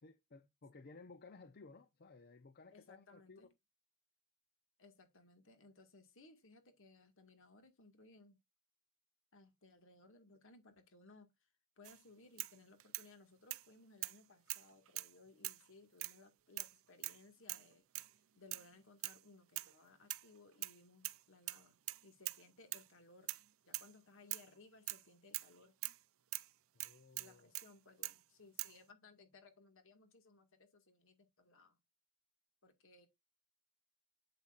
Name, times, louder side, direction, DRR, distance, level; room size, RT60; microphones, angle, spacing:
voice 1, 0.0-3.5 26.7-27.5, left 3 dB, 45° left, 0.7 m, -58 dB
voice 2, 2.7-3.5 4.8-8.4 9.3-11.5 11.8-17.9 18.1-23.4 23.7-25.8 27.2-31.8 32.6-33.1, left 3 dB, 60° left, 1.9 m, -63 dB
sound 1, 11.8-12.0 12.4-13.1 13.5-13.7 14.0-14.2 14.5-15.1 15.4-15.7 16.0-16.2 16.6-16.7 17.0-17.2 17.5-17.7 17.9-18.1 18.5-18.7 19.0-19.2 19.6-19.7 20.1-20.8 21.0-21.2 21.5-22.4 22.7-22.9 23.3-23.5 23.7-23.9 24.3-24.5 24.9-25.0 25.3-25.5 25.8-26.0 26.3-26.5 26.8-27.7 28.0-28.2 28.6-28.8, right 19 dB, 65° right, 0.5 m, -43 dB
8.6 x 7.8 x 2.5 m
head